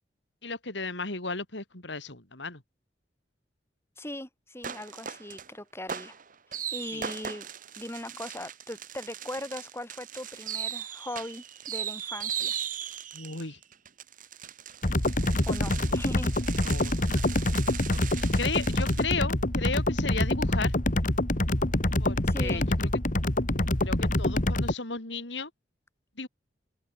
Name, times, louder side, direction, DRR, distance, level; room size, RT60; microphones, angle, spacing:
voice 1, 0.4-2.6 6.9-7.1 13.1-13.6 15.8-16.0 16.6-17.2 17.7-20.8 22.0-22.9 23.5-25.5 26.2-26.3, left 4 dB, 75° left, 3.9 m, -35 dB
voice 2, 4.0-6.2 6.7-7.5 7.8-12.6 15.5-16.3 22.2-22.6, left 1 dB, 15° left, 7.3 m, -39 dB
sound 1, 4.6-5.5 5.9-19.0, right 9 dB, 50° right, 1.8 m, -38 dB
sound 2, 14.8-24.7, left 1 dB, 45° left, 2.3 m, -26 dB
open air
head